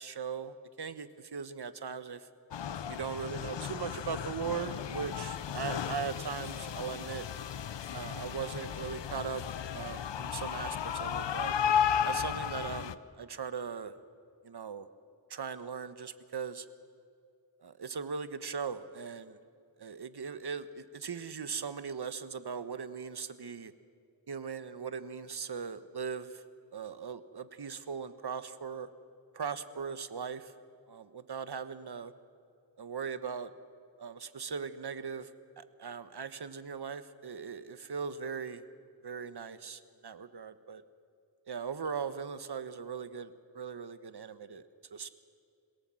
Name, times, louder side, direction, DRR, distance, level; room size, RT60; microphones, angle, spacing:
voice 1, 0.0-2.3 2.9-7.3 7.9-9.4 9.7-11.5 12.0-13.9 14.4-14.9 15.3-16.7 17.6-19.4 19.8-23.7 24.3-26.4 26.7-28.9 29.3-30.5 30.9-32.1 32.8-33.5 34.0-35.3 35.6-38.6 39.0-40.8 41.5-45.1, right 6 dB, 65° right, 12 dB, 1.2 m, -39 dB
sound 1, 2.5-12.9, left 8 dB, 80° left, 0.7 m, -34 dB
27.5 x 17.5 x 7.6 m, 2.4 s
cardioid pair, 50°, 42 cm